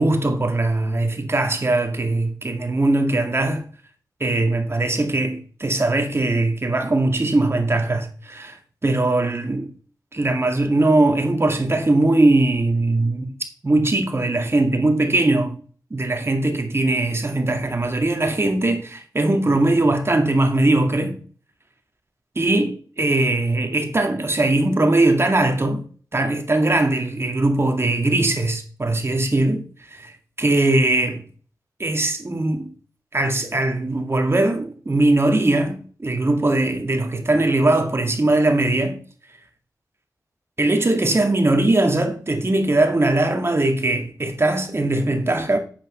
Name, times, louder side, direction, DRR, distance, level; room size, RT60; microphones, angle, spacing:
voice 1, 0.0-3.6 4.2-8.6 8.8-9.7 10.1-13.3 13.6-15.6 15.9-21.2 22.4-25.8 26.1-30.1 30.4-31.2 31.8-32.7 33.1-39.0 40.6-45.6, right 2 dB, 35° right, 2.1 m, -20 dB
8.8 x 5.6 x 5.6 m
cardioid pair, 50°, 7 cm